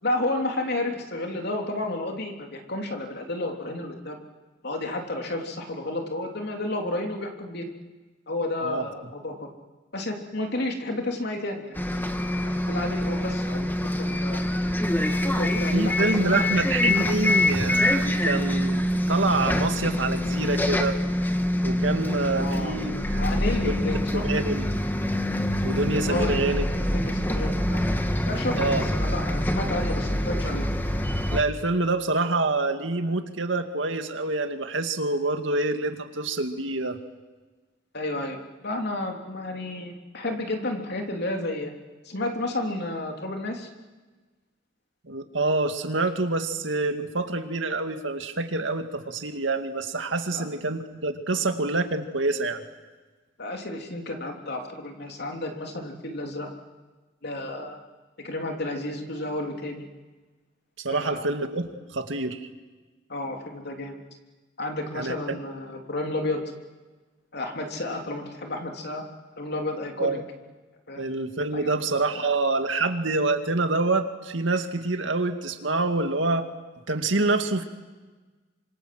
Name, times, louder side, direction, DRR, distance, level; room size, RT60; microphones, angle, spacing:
voice 1, 0.0-4.2 4.6-7.7 8.3-9.5 9.9-12.1 12.4-14.5 15.2-16.4 22.4-22.8 23.2-24.3 26.1-26.5 26.9-27.8 28.3-30.7 37.9-41.7 42.1-43.7 50.3-50.5 53.4-56.5 57.2-57.8 58.2-59.9 60.9-61.2 63.1-64.0 64.6-66.5 67.3-69.0 69.4-70.2 70.9-71.1 71.5-71.8 72.1-72.3, left 2 dB, 60° left, 3 dB, 3.5 m, -31 dB
Bus, 11.7-31.4, left 1 dB, 10° left, 1.6 m, -25 dB
voice 2, 15.7-21.0 21.6-23.3 23.6-23.8 24.1-24.7 25.6-26.7 28.6-28.8 31.3-37.0 45.1-52.6 60.8-62.4 65.0-65.4 70.0-70.2 71.0-76.5 76.9-77.6, right 3 dB, 75° right, 7 dB, 2.2 m, -26 dB
28.0 x 26.0 x 7.8 m, 1.3 s
head